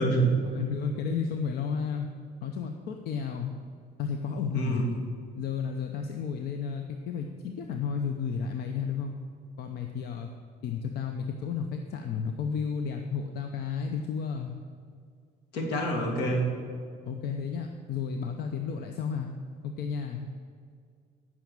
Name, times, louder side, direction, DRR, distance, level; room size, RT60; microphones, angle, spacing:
voice 1, 0.0-0.3 4.5-4.9 15.5-16.5, right 2 dB, 90° left, 1 dB, 2.3 m, -26 dB
voice 2, 0.5-2.1 2.4-3.5 4.0-4.8 5.4-9.1 9.6-10.3 10.6-14.5 17.1-19.3 19.6-20.2, left 6 dB, 70° left, 5 dB, 0.8 m, -32 dB
9.5 x 6.4 x 8.6 m, 2.1 s
cardioid pair, 110°, 17 cm